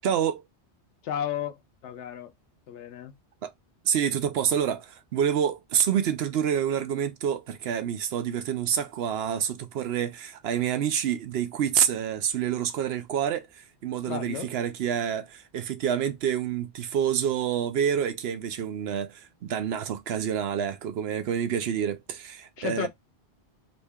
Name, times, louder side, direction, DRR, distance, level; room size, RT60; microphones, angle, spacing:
voice 1, 0.0-0.4 3.4-3.5 3.9-22.9, right 9 dB, 70° right, 0.8 m, -27 dB
voice 2, 1.0-1.6 1.8-2.3 2.7-3.1 14.1-14.5 22.6-22.9, left 9 dB, 90° left, 0.9 m, -33 dB
2.8 x 2.8 x 3.4 m
omnidirectional pair, 1.1 m